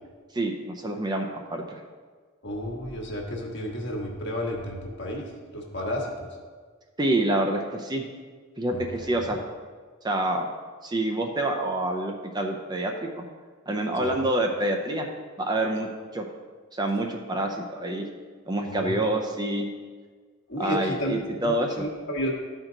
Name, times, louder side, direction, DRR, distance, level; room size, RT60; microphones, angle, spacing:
voice 1, 0.3-1.8 7.0-8.0 8.6-9.5 10.0-10.5 10.8-13.2 13.7-15.1 15.4-16.3 16.7-18.0 18.5-19.7 20.6-21.8, right 1 dB, 20° right, 2 dB, 0.6 m, -27 dB
voice 2, 2.4-5.3 5.5-6.1 8.7-9.3 14.0-14.1 18.7-19.0 20.5-22.3, equal, 55° left, 0 dB, 1.4 m, -32 dB
13.0 x 4.5 x 3.8 m, 1.5 s
head